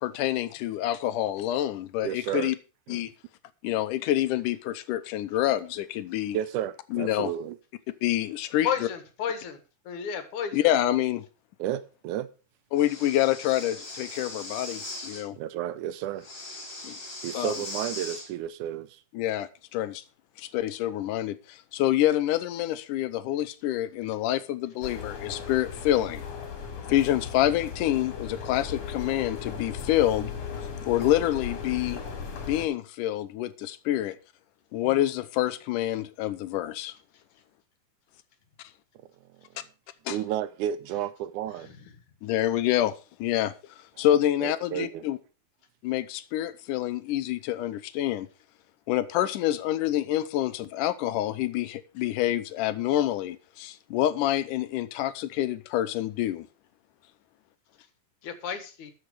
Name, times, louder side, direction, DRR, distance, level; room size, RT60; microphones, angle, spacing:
voice 1, 0.0-2.6 2.9-3.1 3.6-6.4 6.9-7.3 8.0-8.9 10.5-11.2 12.7-15.4 16.8-17.0 17.3-17.5 19.1-20.0 20.4-26.3 26.9-30.3 30.9-32.0 32.4-34.2 34.7-37.0 40.1-40.2 42.2-42.9 43.2-43.5 44.0-45.2 45.8-48.3 48.9-56.5, left 13 dB, 85° left, 2.3 m, -27 dB
voice 2, 2.0-2.5 2.9-3.1 6.3-7.6 11.6-12.3 15.4-16.3 17.2-19.0 34.8-35.0 40.1-41.7 44.0-44.1 44.4-45.0, right 11 dB, 80° right, 2.0 m, -32 dB
voice 3, 8.6-9.6 9.9-10.6 58.2-58.9, left 8 dB, 70° left, 2.8 m, -31 dB
Breathing, 12.7-15.2 16.2-18.3, left 2 dB, 35° left, 4.3 m, -39 dB
sound 1, 24.8-32.7, left 6 dB, 55° left, 3.4 m, -37 dB
12.5 x 6.6 x 4.9 m
omnidirectional pair, 3.7 m